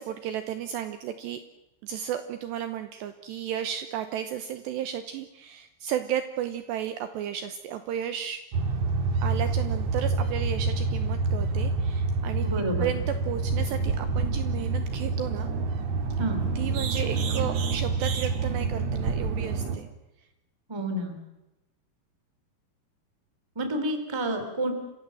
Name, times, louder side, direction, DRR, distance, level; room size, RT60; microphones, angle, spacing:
voice 1, 0.0-1.4 1.8-8.4 9.2-12.5 12.8-15.5 16.6-19.9, right 10 dB, 75° right, 9 dB, 2.7 m, -33 dB
sound 1, 8.5-19.8, right 4 dB, 60° right, 1.9 m, -27 dB
voice 2, 12.4-12.9 16.2-16.4 20.7-21.2 23.5-24.7, right 1 dB, 10° right, 6 dB, 1.6 m, -29 dB
29.0 x 15.5 x 7.7 m, 0.97 s
omnidirectional pair, 5.8 m